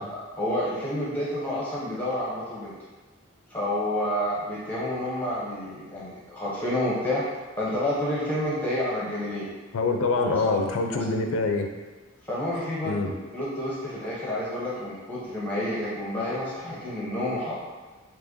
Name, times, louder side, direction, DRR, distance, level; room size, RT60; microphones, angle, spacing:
voice 1, 0.0-2.7 3.5-7.2 7.6-9.5 10.2-11.0 12.3-17.5, left 1 dB, 5° left, -8 dB, 0.6 m, -29 dB
voice 2, 9.7-11.7 12.8-13.1, left 3 dB, 70° left, 4 dB, 0.4 m, -25 dB
2.8 x 2.6 x 3.6 m, 1.3 s
head